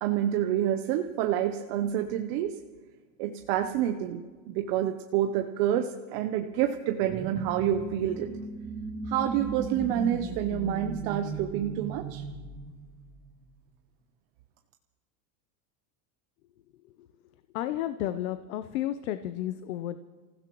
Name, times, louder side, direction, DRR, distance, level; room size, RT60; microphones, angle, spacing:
voice 1, 0.0-2.6 3.2-4.2 4.5-8.3 9.1-12.2, right 11 dB, 40° right, 5 dB, 0.6 m, -28 dB
sound 1, 7.0-13.4, right 3 dB, 20° right, 1.8 m, -37 dB
voice 2, 17.5-20.0, left 12 dB, 80° left, 11 dB, 0.7 m, -32 dB
29.5 x 15.5 x 3.0 m, 1.4 s
supercardioid pair, 175°, 40 cm